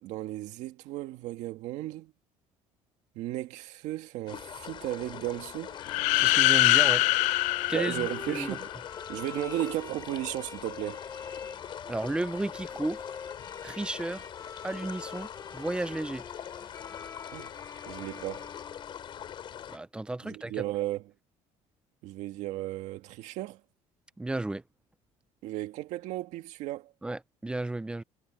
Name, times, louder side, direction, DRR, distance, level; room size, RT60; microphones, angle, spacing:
voice 1, 0.0-2.1 3.2-5.8 7.7-8.7 9.1-11.0 17.3-17.5 17.9-18.5 20.2-21.0 22.0-23.6 25.4-26.9, right 16 dB, 75° right, 1.9 m, -35 dB
sound 1, 4.3-19.8, left 9 dB, 40° left, 4.1 m, -43 dB
Bowed string instrument, 5.7-19.6, left 5 dB, 25° left, 1.1 m, -46 dB
sound 2, 5.8-8.8, left 22 dB, 85° left, 0.5 m, -24 dB
voice 2, 6.1-7.0 7.7-8.6 11.9-13.0 13.6-14.3 14.6-16.2 19.7-20.6 24.2-24.6 27.0-28.0, right 2 dB, 10° right, 0.6 m, -33 dB
cardioid pair, 145°, 12 cm